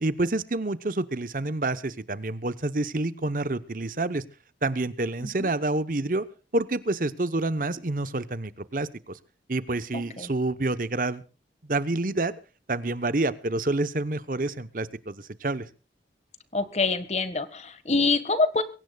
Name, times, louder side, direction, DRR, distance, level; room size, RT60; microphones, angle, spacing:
voice 1, 0.0-4.2 4.6-6.3 6.5-9.2 9.5-11.2 11.6-12.3 12.7-15.7, right 2 dB, 50° right, 14 dB, 0.9 m, -28 dB
voice 2, 9.9-10.3 16.5-18.6, left 3 dB, 40° left, 13 dB, 1.6 m, -26 dB
23.0 x 17.5 x 2.3 m, 0.35 s
head